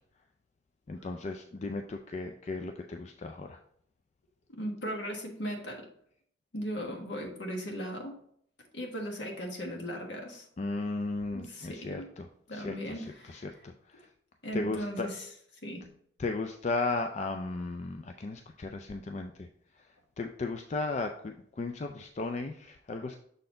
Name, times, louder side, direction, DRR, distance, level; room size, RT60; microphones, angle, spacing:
voice 1, 0.9-3.6 10.6-14.1 14.5-15.1 16.2-19.5 19.8-19.9 20.2-23.2, left 3 dB, 35° left, 5 dB, 0.4 m, -35 dB
voice 2, 4.5-5.9 6.5-8.1 8.7-10.4 11.3-12.1 12.5-13.5 14.4-15.3 15.6-15.8, equal, 65° left, 2 dB, 1.4 m, -37 dB
6.7 x 4.2 x 3.8 m, 0.66 s
head